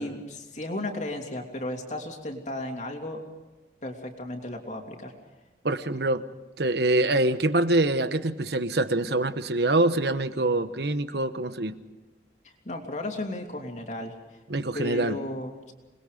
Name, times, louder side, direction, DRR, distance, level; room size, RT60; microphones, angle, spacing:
voice 1, 0.0-3.2 3.8-5.1 12.4-14.4 14.7-15.7, left 1 dB, 40° left, 2 dB, 3.0 m, -34 dB
voice 2, 5.6-6.2 6.6-11.8 14.5-15.2, right 2 dB, 65° right, 11 dB, 1.1 m, -25 dB
27.5 x 21.0 x 5.1 m, 1.1 s
head